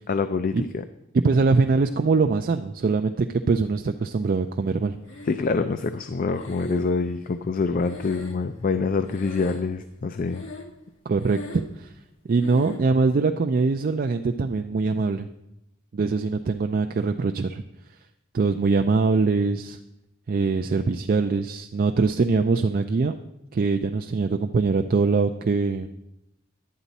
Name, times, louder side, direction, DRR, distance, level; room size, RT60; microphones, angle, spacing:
voice 1, 0.1-0.6 5.3-10.4, left 4 dB, 45° left, 10 dB, 0.4 m, -25 dB
voice 2, 1.2-5.0 11.1-11.9 12.3-15.3 15.9-17.6 18.3-19.8 20.3-23.2 23.5-25.9, right 4 dB, 45° right, 6 dB, 0.4 m, -23 dB
Breathing, 5.1-5.8 6.3-8.8 9.1-9.9 10.3-10.9 11.1-11.8 12.4-12.9, equal, 70° left, 1.4 m, -40 dB
11.0 x 9.0 x 4.1 m, 0.86 s
head